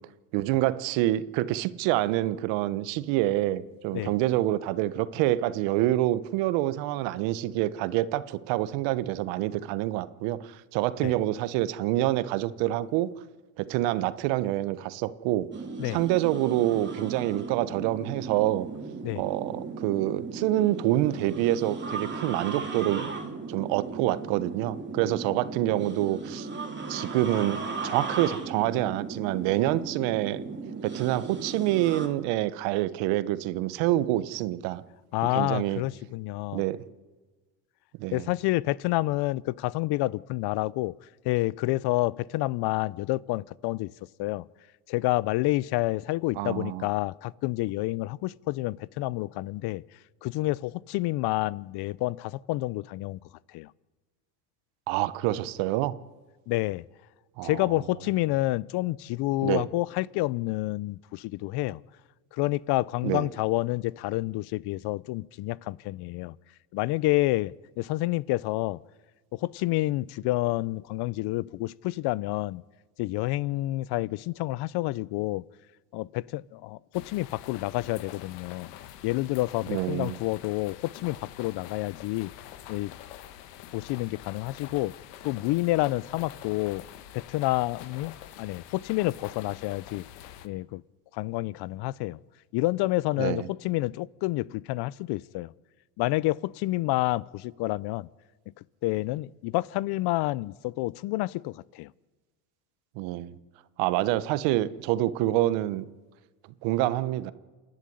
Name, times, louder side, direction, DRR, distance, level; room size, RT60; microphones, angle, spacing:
voice 1, 0.3-13.1 13.6-15.5 15.9-18.7 19.2-23.1 23.5-26.5 26.9-30.4 30.8-34.8 35.3-35.8 36.5-36.8 38.0-38.3 46.4-46.9 54.9-55.9 57.4-57.7 59.4-59.6 63.0-63.3 79.7-80.2 93.2-93.5 103.0-103.4 103.8-105.8 106.6-107.3, right 15 dB, 70° right, 1.2 m, -27 dB
sound 1, 15.5-32.1, right 4 dB, 25° right, 3.4 m, -37 dB
voice 2, 35.1-36.6 38.1-40.9 41.2-43.9 44.2-44.5 44.9-49.8 50.2-53.2 53.5-53.7 56.5-56.8 57.4-61.8 62.3-66.4 66.7-68.8 69.3-72.6 73.0-75.4 75.9-78.7 79.0-82.3 82.7-82.9 83.7-84.9 85.2-86.8 87.1-90.1 90.4-90.8 91.1-92.2 92.5-95.5 96.0-98.1 98.8-101.9, left 19 dB, 55° left, 0.7 m, -29 dB
sound 2, 76.9-90.5, left 12 dB, 80° left, 1.4 m, -46 dB
28.0 x 10.5 x 9.5 m
supercardioid pair, 95°, 47 cm